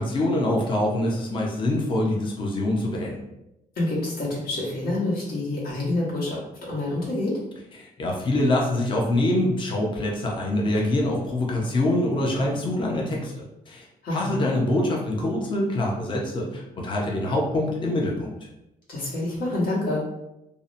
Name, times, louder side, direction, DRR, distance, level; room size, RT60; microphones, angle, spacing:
voice 1, 0.0-3.2 7.8-13.9 14.1-18.3, left 1 dB, 30° left, -2 dB, 0.5 m, -25 dB
voice 2, 3.8-7.4 14.0-14.5 18.9-20.0, left 2 dB, 75° left, -6 dB, 1.1 m, -27 dB
2.7 x 2.1 x 2.5 m, 0.90 s
cardioid pair, 145°, 16 cm